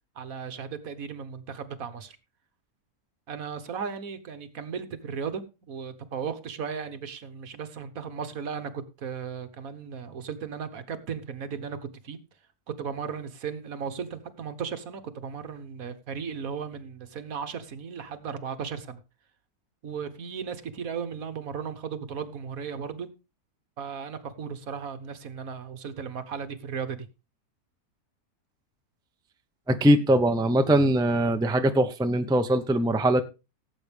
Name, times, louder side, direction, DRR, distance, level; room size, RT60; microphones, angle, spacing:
voice 1, 0.1-2.2 3.3-11.8 12.0-12.2 12.7-19.0 19.8-23.1 23.8-27.0, right 6 dB, 65° right, 1.5 m, -36 dB
voice 2, 29.7-33.2, right 1 dB, 5° right, 0.6 m, -22 dB
17.0 x 8.0 x 3.4 m
omnidirectional pair, 1.6 m